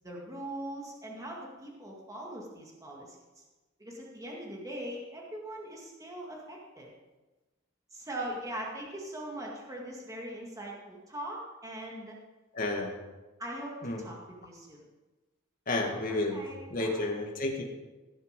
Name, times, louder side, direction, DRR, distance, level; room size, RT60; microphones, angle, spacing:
voice 1, 0.0-3.4 3.8-6.9 7.9-12.2 13.4-14.8 16.1-17.2, right 1 dB, 15° right, -2 dB, 2.0 m, -41 dB
voice 2, 12.5-13.0 13.8-14.0 15.7-16.4 16.7-17.6, left 2 dB, 40° left, 1 dB, 1.8 m, -31 dB
16.0 x 6.9 x 5.2 m, 1.2 s
head